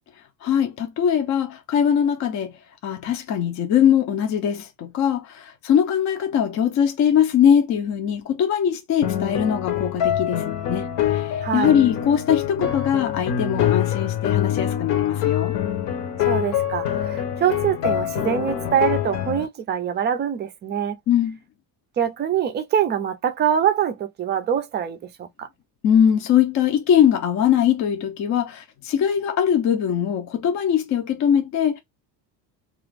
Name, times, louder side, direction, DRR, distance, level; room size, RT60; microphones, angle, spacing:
voice 1, 0.4-2.5 2.8-15.5 21.1-21.4 25.8-31.8, left 9 dB, 40° left, 0.5 m, -21 dB
sound 1, 9.0-19.5, left 10 dB, 65° left, 0.9 m, -25 dB
voice 2, 11.4-11.8 16.2-21.0 22.0-25.5, right 9 dB, 25° right, 0.4 m, -24 dB
2.9 x 2.5 x 3.2 m
cardioid pair, 165°, 45 cm